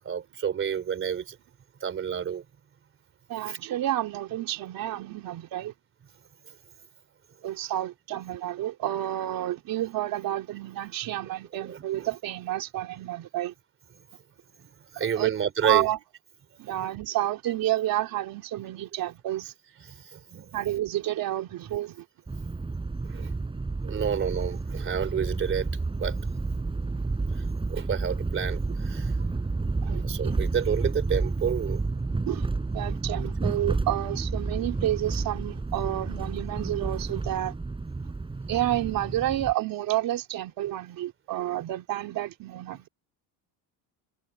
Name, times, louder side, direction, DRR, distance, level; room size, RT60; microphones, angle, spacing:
voice 1, 0.1-1.4 1.8-2.4 3.5-3.6 11.2-12.1 14.9-15.9 20.1-20.5 23.1-23.3 23.8-25.7 26.0-26.2 27.7-28.6 28.9-29.1 30.0-31.8, right 8 dB, 30° right, 3.9 m, -29 dB
voice 2, 3.3-5.7 7.4-13.5 15.2-15.3 15.6-16.0 16.6-19.5 20.5-22.0 29.8-30.4 32.3-32.5 32.7-37.5 38.5-42.9, right 14 dB, 50° right, 3.8 m, -30 dB
sound 1, 22.3-39.5, right 3 dB, 10° right, 6.9 m, -30 dB
cardioid pair, 170°, 42 cm